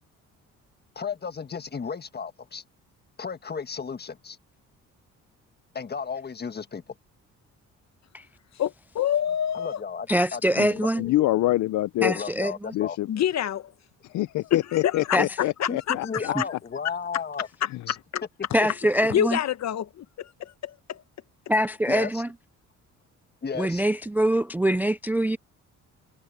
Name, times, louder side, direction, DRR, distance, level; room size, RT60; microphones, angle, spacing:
voice 1, 0.9-2.6 3.2-4.4 5.7-6.8 9.5-11.1 12.0-13.0 15.7-17.5 17.9-18.0 18.6-18.7 21.9-22.2 23.4-23.8, left 6 dB, 35° left, 1.5 m, -34 dB
voice 2, 8.6-9.8 13.1-13.7 14.5-16.0 16.2-16.4 17.6-18.2 19.1-21.0, left 10 dB, 60° left, 1.2 m, -27 dB
voice 3, 10.1-11.0 12.0-12.7 15.1-15.3 16.1-16.4 18.5-19.4 21.5-22.3 23.6-25.4, equal, 5° right, 0.3 m, -24 dB
voice 4, 11.0-12.2 12.7-13.1 14.1-16.3, left 16 dB, 75° left, 0.7 m, -25 dB
cardioid pair, 90°, 30 cm